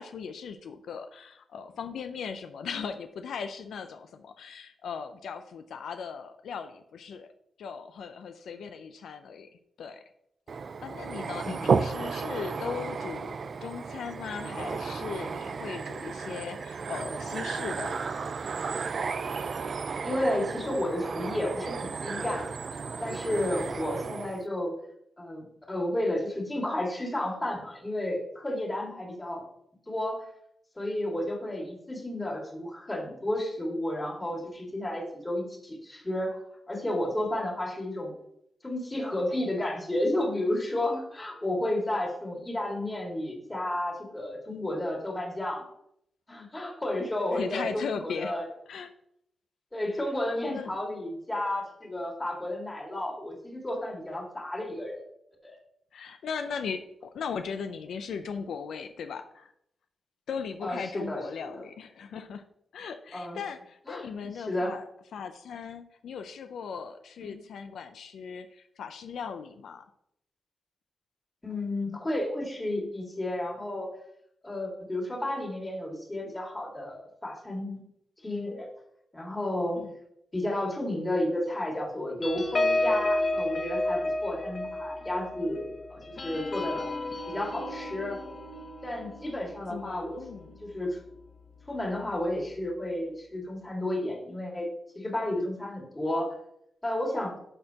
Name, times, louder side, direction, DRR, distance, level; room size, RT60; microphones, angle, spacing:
voice 1, 0.0-7.3 7.6-9.5 9.8-10.0 10.8-17.9 47.1-48.3 48.7-48.9 49.9-50.1 50.5-50.8 55.9-59.5 60.3-62.4 62.7-69.8 79.8-80.0 89.7-90.7, left 6 dB, 90° left, 8 dB, 0.4 m, -38 dB
sound 1, 10.5-24.4, right 5 dB, 50° right, 0.4 m, -33 dB
voice 2, 11.4-11.8 20.0-22.5 23.0-24.7 25.2-29.4 29.9-30.3 30.8-36.4 36.7-38.1 38.6-45.7 46.3-48.4 49.7-55.0 55.4-55.6 60.6-61.6 63.1-63.4 63.9-64.0 64.5-64.8 67.2-67.4 71.4-73.9 74.4-77.8 78.2-78.7 79.1-79.8 80.3-86.9 87.3-88.2 88.8-90.2 90.6-91.0 91.7-94.7 95.0-96.4 96.8-97.4, left 1 dB, 15° left, -1 dB, 2.0 m, -32 dB
sound 2, 82.2-91.1 91.6-91.8 92.1-92.4, left 2 dB, 45° left, 0.9 m, -32 dB
11.5 x 4.4 x 2.9 m, 0.73 s
wide cardioid pair, 110°, 0 cm